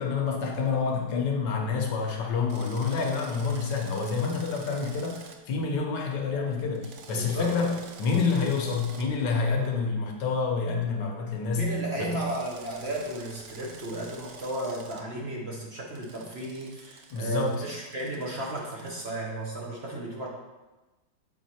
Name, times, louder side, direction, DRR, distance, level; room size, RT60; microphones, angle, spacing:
voice 1, 0.0-12.2 17.1-17.6, left 5 dB, 80° left, 1 dB, 1.6 m, -28 dB
Drill, 2.5-5.4 6.7-9.1 12.2-15.0 15.9-19.1, right 5 dB, 65° right, 0.7 m, -49 dB
voice 2, 7.1-7.9 9.6-9.7 11.5-20.3, right 1 dB, 45° right, -3 dB, 1.0 m, -34 dB
7.3 x 4.1 x 4.3 m, 1.1 s
omnidirectional pair, 1.9 m